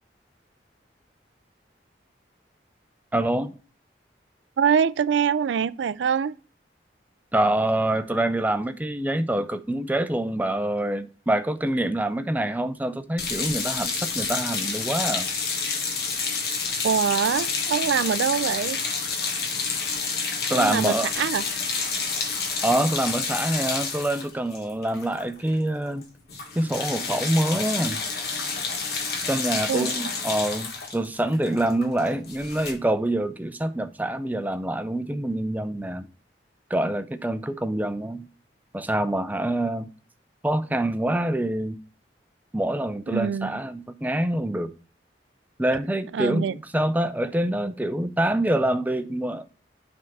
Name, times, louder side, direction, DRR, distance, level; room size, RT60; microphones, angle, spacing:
voice 1, 3.1-3.5 7.3-15.3 20.5-21.1 22.6-26.1 26.5-28.0 29.3-36.1 36.7-38.3 38.7-39.9 40.4-41.8 42.5-44.7 45.6-49.5, right 1 dB, 10° right, 0.5 m, -26 dB
voice 2, 4.6-6.4 16.8-18.8 20.5-21.4 29.7-29.9 43.1-43.6 46.1-46.5, right 7 dB, 90° right, 0.4 m, -24 dB
sound 1, 13.2-25.6 25.8-26.0 26.3-32.7, left 5 dB, 60° left, 1.4 m, -29 dB
9.3 x 3.6 x 5.3 m
head